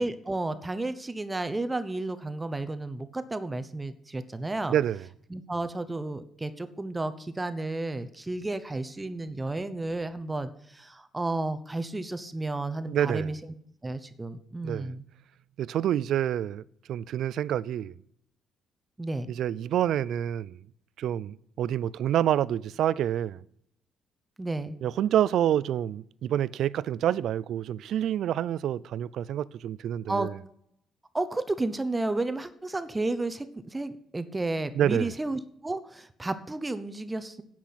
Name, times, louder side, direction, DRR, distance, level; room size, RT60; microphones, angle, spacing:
voice 1, 0.0-4.7 5.3-13.4 13.8-15.0 19.0-19.3 24.4-24.8 30.1-30.3 31.1-37.4, right 2 dB, 15° right, 0.8 m, -32 dB
voice 2, 4.7-5.0 12.9-13.3 14.6-14.9 15.6-16.6 16.9-17.9 19.3-20.6 21.0-23.4 24.8-30.3 34.8-35.1, right 11 dB, 70° right, 0.4 m, -27 dB
10.5 x 6.0 x 8.4 m
cardioid pair, 115°, 0 cm